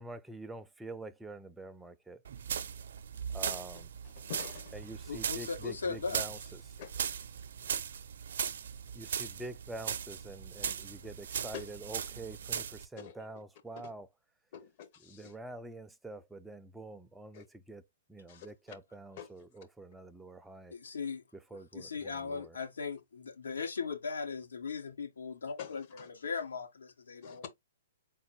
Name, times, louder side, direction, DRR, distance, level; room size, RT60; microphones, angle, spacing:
voice 1, 0.0-2.2 3.3-3.9 4.7-6.6 8.9-14.1 15.0-17.8 18.1-20.7 21.5-22.6, right 2 dB, 5° right, 0.4 m, -46 dB
sound 1, 2.2-12.9, right 8 dB, 70° right, 0.5 m, -38 dB
voice 2, 4.2-4.8 6.8-6.9 11.5-11.7 12.6-12.7 13.0-13.1 13.8-13.9 14.5-15.3 17.3-17.4 18.3-18.5 19.2-19.3 25.6-26.1 27.2-27.5, left 8 dB, 50° left, 1.0 m, -46 dB
voice 3, 5.1-6.2 18.3-18.4 20.7-21.2 21.7-27.5, left 5 dB, 85° left, 1.3 m, -38 dB
4.0 x 2.1 x 4.3 m
hypercardioid pair, 130°, 0 cm